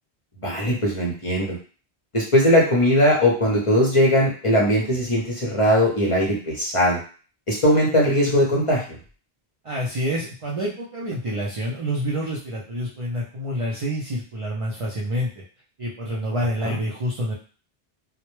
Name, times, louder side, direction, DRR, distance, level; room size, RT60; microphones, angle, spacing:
voice 1, 0.4-1.6 2.1-7.0 7.5-8.8 16.6-16.8, equal, 35° left, -4 dB, 0.6 m, -19 dB
voice 2, 9.6-15.3 15.8-17.3, equal, 55° right, -5 dB, 0.3 m, -27 dB
2.1 x 2.1 x 3.0 m, 0.39 s
omnidirectional pair, 1.1 m